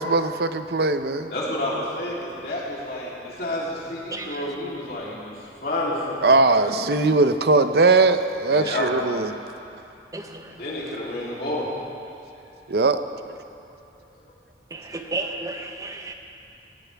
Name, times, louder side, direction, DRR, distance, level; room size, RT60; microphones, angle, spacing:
voice 1, 0.0-1.3 6.2-9.4 12.7-13.0, right 3 dB, 60° right, 10 dB, 0.6 m, -20 dB
voice 2, 1.3-5.3 5.6-6.3 6.6-6.7 8.5-9.3 10.6-11.7, left 1 dB, 60° left, -5 dB, 3.2 m, -29 dB
voice 3, 4.1-4.4 10.1-10.6 14.7-16.1, right 2 dB, 20° right, 4 dB, 0.9 m, -33 dB
17.5 x 16.5 x 3.4 m, 2.6 s
head